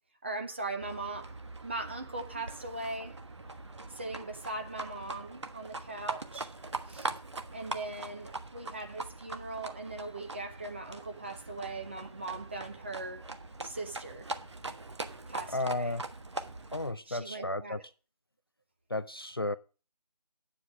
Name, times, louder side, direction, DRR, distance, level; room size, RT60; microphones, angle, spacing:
voice 1, 0.2-1.4 1.6-3.2 3.9-6.5 6.9-7.2 7.5-13.2 13.6-14.3 15.3-16.0 17.1-17.8, right 2 dB, 15° right, 0.8 m, -40 dB
Livestock farm animals working animals, 0.8-16.9, right 3 dB, 45° right, 1.3 m, -42 dB
voice 2, 15.5-16.0 16.7-17.8 18.9-19.6, left 2 dB, 35° left, 0.5 m, -33 dB
9.7 x 7.8 x 6.1 m
figure-of-eight pair, 160°, 21 cm